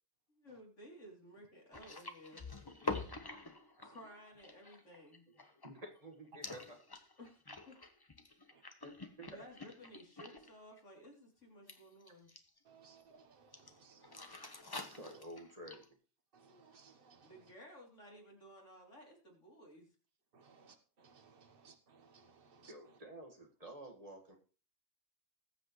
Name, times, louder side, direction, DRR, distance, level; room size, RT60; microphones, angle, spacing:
voice 1, 0.3-2.5 3.8-5.2 7.2-7.4 7.7-7.8 9.2-12.3 17.2-19.9, equal, 90° left, 3.8 m, -56 dB
sound 1, 1.7-6.1 6.4-10.5 10.8-11.1 11.7-12.6 13.5-13.7 14.0-15.9, left 3 dB, 20° left, 0.9 m, -47 dB
voice 2, 2.3-3.1 5.6-6.8 8.8-9.4 14.9-15.9 22.7-24.4, right 1 dB, 30° right, 1.9 m, -51 dB
voice 3, 12.6-15.2 16.3-17.5 20.3-23.0, right 5 dB, 50° right, 1.4 m, -63 dB
20.0 x 7.8 x 3.2 m
omnidirectional pair, 1.2 m